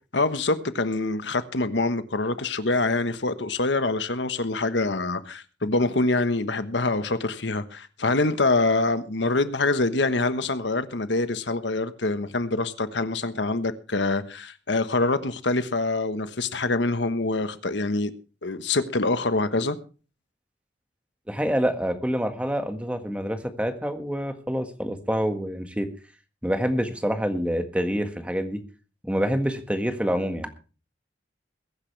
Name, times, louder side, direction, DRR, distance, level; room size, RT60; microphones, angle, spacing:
voice 1, 0.1-18.1 18.4-19.8, left 2 dB, 80° left, 1.3 m, -25 dB
voice 2, 21.3-25.9 26.4-28.6 29.0-30.5, equal, 5° right, 1.7 m, -27 dB
22.0 x 10.5 x 3.4 m
head